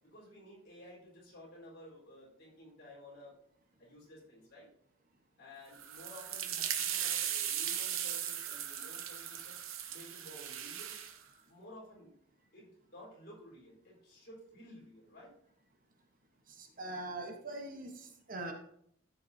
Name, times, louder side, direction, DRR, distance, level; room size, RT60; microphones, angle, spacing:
voice 1, 0.1-3.4 3.8-4.7 5.4-9.6 9.9-11.0 11.4-12.1 12.5-15.3, left 1 dB, 50° left, -4 dB, 4.2 m, -54 dB
sound 1, 5.7-11.2, right 10 dB, 80° right, 0.9 m, -37 dB
voice 2, 16.5-18.5, right 2 dB, 45° right, 3 dB, 1.1 m, -42 dB
14.5 x 6.0 x 2.7 m, 0.68 s
head